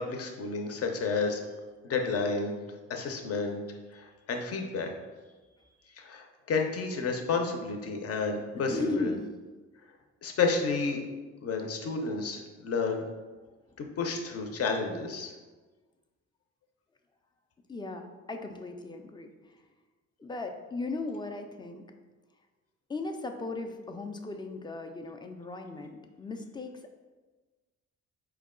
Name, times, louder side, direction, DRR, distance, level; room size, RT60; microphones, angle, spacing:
voice 1, 0.0-1.4 1.8-2.5 2.9-3.6 3.9-4.9 6.0-9.1 10.2-11.0 11.4-13.0 13.8-15.3, left 4 dB, 50° left, 3 dB, 0.7 m, -31 dB
voice 2, 8.5-9.3 13.4-13.9 17.7-19.6 20.2-21.8 22.9-26.9, left 3 dB, 15° left, 5 dB, 0.4 m, -37 dB
4.6 x 2.3 x 3.6 m, 1.3 s
cardioid pair, 90°, 30 cm